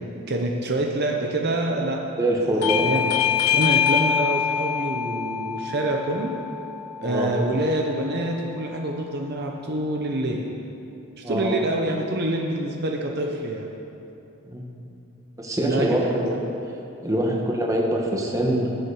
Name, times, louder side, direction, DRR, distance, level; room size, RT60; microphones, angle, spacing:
voice 1, 0.3-2.0 2.6-3.1 3.5-6.3 7.0-10.4 11.2-13.7 15.6-16.4 17.2-17.4, right 1 dB, 45° right, 1 dB, 0.9 m, -26 dB
voice 2, 2.2-3.1 7.0-7.3 11.2-11.6 14.5-14.6 15.4-16.3 17.0-18.7, right 1 dB, 15° right, -1 dB, 1.4 m, -24 dB
Bell / Doorbell, 2.6-7.8, left 8 dB, 80° left, 0.6 m, -25 dB
20.0 x 7.5 x 4.9 m, 2.8 s
head